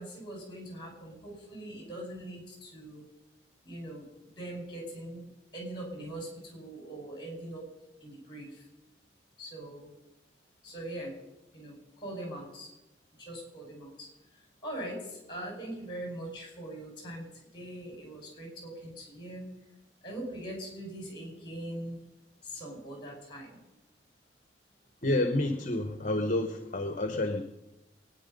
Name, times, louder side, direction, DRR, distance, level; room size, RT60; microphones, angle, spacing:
voice 1, 0.0-3.1 3.6-4.1 4.4-7.7 8.0-8.7 9.4-9.9 10.6-11.2 11.5-12.7 13.2-19.5 20.0-22.0 22.4-23.6, right 1 dB, 25° left, 0 dB, 5.7 m, -42 dB
voice 2, 25.0-27.4, left 1 dB, 40° left, 7 dB, 1.0 m, -29 dB
23.0 x 9.9 x 5.4 m, 0.98 s
head